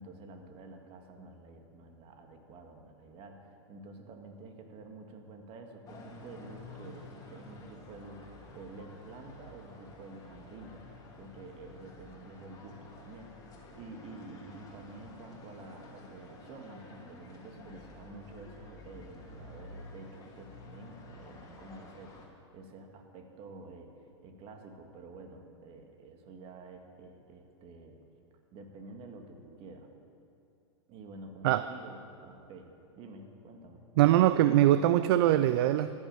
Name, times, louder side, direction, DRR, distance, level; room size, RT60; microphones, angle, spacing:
voice 1, 0.0-13.3 13.7-22.2 22.5-23.9 24.2-28.0 28.5-29.9 30.9-32.7 33.0-33.8, right 3 dB, 40° right, 4 dB, 1.9 m, -49 dB
sound 1, 5.9-22.3, left 2 dB, 25° left, 2.6 m, -51 dB
voice 2, 34.0-36.1, right 13 dB, 55° right, 13 dB, 0.5 m, -23 dB
14.0 x 9.8 x 7.6 m, 2.6 s
hypercardioid pair, 120°, 15 cm